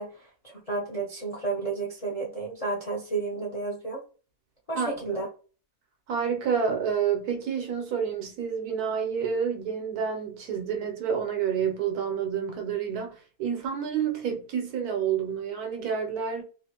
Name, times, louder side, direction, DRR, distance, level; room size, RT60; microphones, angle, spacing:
voice 1, 0.0-4.0 4.7-5.3, right 3 dB, 55° left, 0.4 m, -32 dB
voice 2, 4.7-5.2 6.1-16.4, right 7 dB, 90° right, 1.3 m, -29 dB
2.9 x 2.5 x 2.8 m
omnidirectional pair, 1.6 m